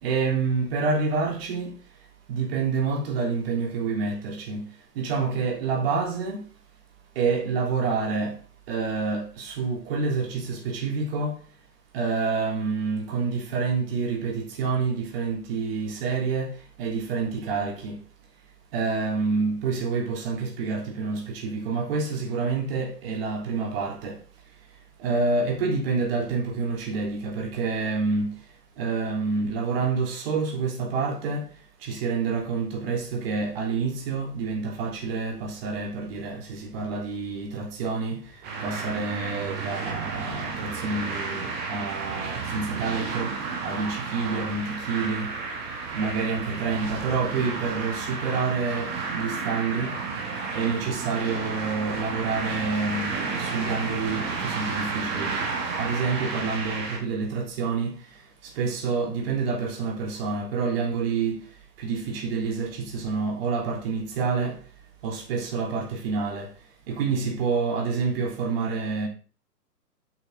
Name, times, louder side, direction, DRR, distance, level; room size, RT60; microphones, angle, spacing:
voice 1, 0.0-1.8 2.3-6.5 7.2-8.4 8.7-11.4 11.9-18.0 18.7-24.2 25.0-28.4 28.8-31.5 31.8-45.4 45.9-50.0 50.5-55.3 55.8-61.5 61.8-64.6 65.0-66.5 66.9-69.1, right 4 dB, 35° right, 3.4 m, -28 dB
sound 1, 38.4-57.0, right 4 dB, 20° right, 2.0 m, -32 dB
8.2 x 8.1 x 4.0 m
figure-of-eight pair, 125°, 48 cm